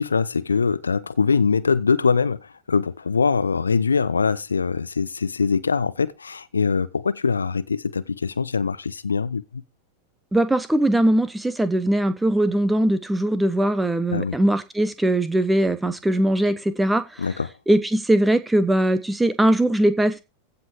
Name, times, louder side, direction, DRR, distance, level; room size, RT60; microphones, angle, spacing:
voice 1, 0.0-9.6 14.1-14.4 17.2-17.5, left 5 dB, 75° left, 0.6 m, -23 dB
voice 2, 10.3-17.0 17.7-20.2, right 1 dB, 5° right, 1.1 m, -20 dB
15.0 x 5.6 x 4.7 m
figure-of-eight pair, 90°, 0 cm